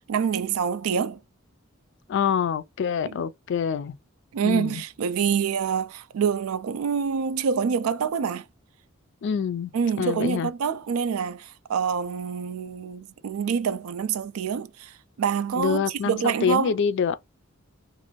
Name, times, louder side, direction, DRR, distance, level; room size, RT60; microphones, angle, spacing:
voice 1, 0.1-1.2 3.1-3.2 4.3-8.4 9.7-16.8, right 6 dB, 80° right, 0.4 m, -26 dB
voice 2, 2.1-4.0 4.4-4.8 9.2-9.7 10.0-10.5 15.6-17.2, left 7 dB, 60° left, 0.3 m, -26 dB
2.6 x 2.5 x 3.0 m
head